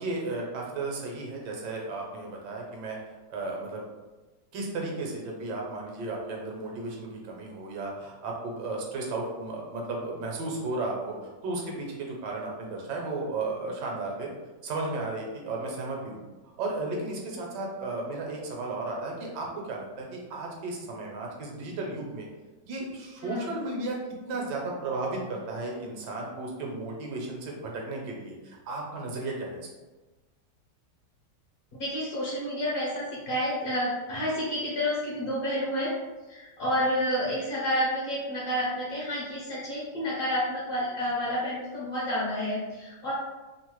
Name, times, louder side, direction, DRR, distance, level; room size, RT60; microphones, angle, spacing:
voice 1, 0.0-3.0 3.3-3.8 4.5-11.1 11.4-14.3 14.6-16.2 16.6-22.3 22.7-24.0 24.3-29.6, right 2 dB, 75° right, -1 dB, 1.3 m, -34 dB
voice 2, 31.8-36.0 36.3-43.1, equal, 60° left, -7 dB, 0.9 m, -29 dB
3.1 x 2.0 x 3.0 m, 1.2 s
omnidirectional pair, 1.9 m